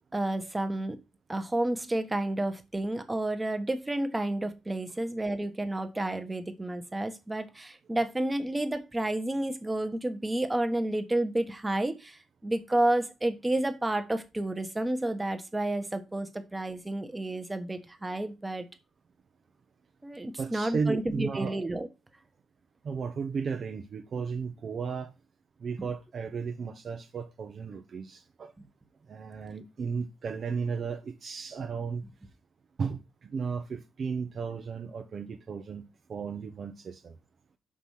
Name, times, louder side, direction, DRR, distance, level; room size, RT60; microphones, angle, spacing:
voice 1, 0.1-1.0 1.3-18.6 20.0-21.9, right 1 dB, 15° right, 1.1 m, -30 dB
voice 2, 20.4-21.5 22.8-25.1 25.6-28.5 29.1-32.0 32.8-37.2, right 5 dB, 50° right, 0.7 m, -34 dB
5.9 x 4.9 x 5.6 m
cardioid pair, 115°, 0 cm